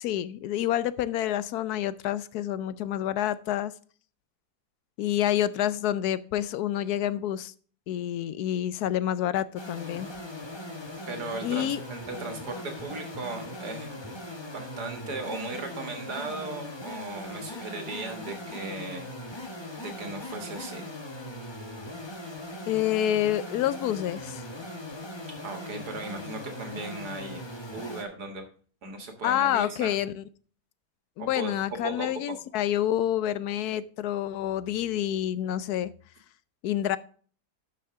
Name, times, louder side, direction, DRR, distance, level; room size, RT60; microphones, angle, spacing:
voice 1, 0.0-3.7 5.0-7.5 7.9-10.1 11.4-11.8 22.7-24.5 29.2-30.2 31.2-35.9 36.6-37.0, left 11 dB, 75° left, 16 dB, 1.1 m, -28 dB
sound 1, 9.5-28.0, left 1 dB, 20° left, 1.1 m, -40 dB
voice 2, 11.1-14.0 14.5-19.0 19.8-20.8 25.4-27.4 27.7-28.4 28.8-30.0 31.2-31.5 31.8-32.1, right 3 dB, 75° right, 5 dB, 2.2 m, -37 dB
12.5 x 5.6 x 3.7 m, 0.44 s
omnidirectional pair, 1.7 m